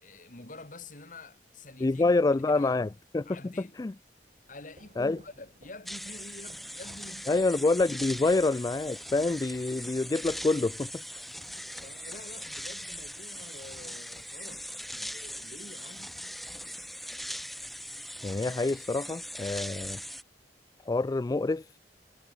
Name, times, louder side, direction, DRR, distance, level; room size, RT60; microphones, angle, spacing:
voice 1, 0.0-2.8 3.3-3.8 4.5-7.4 11.8-14.7 15.0-16.2, left 2 dB, 45° left, 2.6 m, -48 dB
voice 2, 1.8-2.9 3.1-3.9 5.0-5.2 7.3-11.3 18.2-20.0 20.9-21.7, left 3 dB, 20° left, 0.3 m, -27 dB
sound 1, 4.2-13.8, right 2 dB, 40° right, 4.1 m, -58 dB
sound 2, 5.9-20.2, equal, ahead, 1.0 m, -40 dB
head